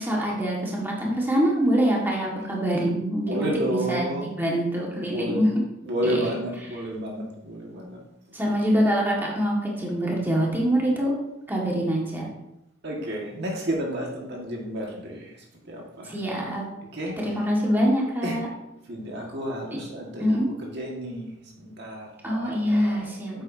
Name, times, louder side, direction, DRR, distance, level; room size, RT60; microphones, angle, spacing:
voice 1, 0.0-5.6 6.0-6.4 8.3-11.2 11.5-12.3 16.0-16.6 17.2-18.5 19.7-19.8 20.2-20.5 22.2-23.4, equal, 10° right, -3 dB, 1.7 m, -25 dB
voice 2, 3.2-4.3 4.8-5.5 5.8-8.0 12.8-15.4 15.6-16.1 16.9-17.1 18.2-18.4 18.9-23.4, equal, 60° right, -1 dB, 1.7 m, -31 dB
9.2 x 8.0 x 2.7 m, 0.85 s
head